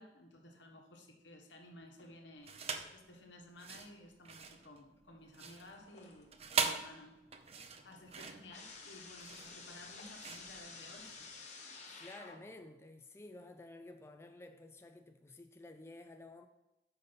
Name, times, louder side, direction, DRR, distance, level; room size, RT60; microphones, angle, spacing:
voice 1, 0.0-11.5 11.8-12.1, left 1 dB, 85° left, 1.3 m, -56 dB
sound 1, 2.4-3.0 3.5-11.3, right 5 dB, 35° right, 0.5 m, -41 dB
sound 2, 5.7-6.5 6.9-12.7, left 4 dB, 40° left, 1.0 m, -52 dB
voice 2, 12.0-16.5, left 2 dB, 15° left, 0.3 m, -52 dB
5.4 x 5.3 x 5.6 m
head